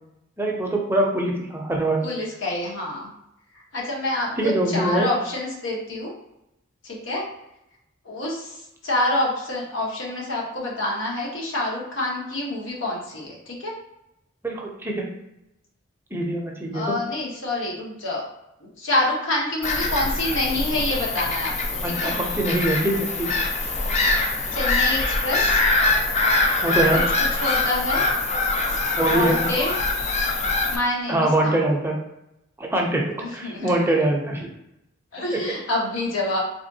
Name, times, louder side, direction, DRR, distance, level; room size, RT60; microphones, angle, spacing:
voice 1, 0.4-2.0 4.4-5.1 14.4-15.0 16.1-17.0 21.8-23.3 26.6-27.0 29.0-29.5 31.1-32.0 32.6-33.1 33.3-34.5, right 1 dB, 10° right, -1 dB, 0.5 m, -23 dB
voice 2, 2.0-3.1 3.5-6.1 6.8-7.2 8.0-13.7 16.7-18.3 18.6-22.2 24.5-25.6 26.9-28.0 29.1-29.8 30.7-31.6 33.2-33.7 35.1-36.4, left 1 dB, 85° left, -3 dB, 1.2 m, -27 dB
Bird vocalization bird call bird song / Gull seagull, 19.6-30.8, left 2 dB, 35° left, 0.5 m, -23 dB
3.4 x 3.4 x 2.7 m, 0.86 s
head